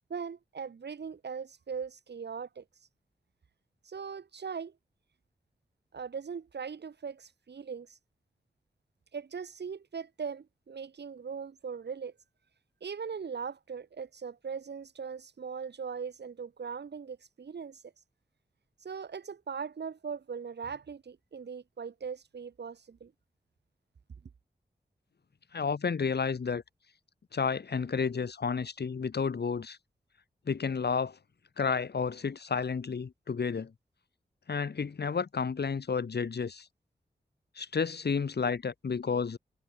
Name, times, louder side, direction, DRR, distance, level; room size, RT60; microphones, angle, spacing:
voice 1, 0.1-2.6 3.8-4.7 5.9-8.0 9.1-12.1 12.8-17.8 18.8-23.1, right 6 dB, 80° right, 2.4 m, -40 dB
voice 2, 25.5-26.6 27.3-29.8 30.5-31.2 31.6-33.7 34.5-36.7 37.6-39.4, left 5 dB, 70° left, 3.0 m, -31 dB
cardioid pair, 45°, 17 cm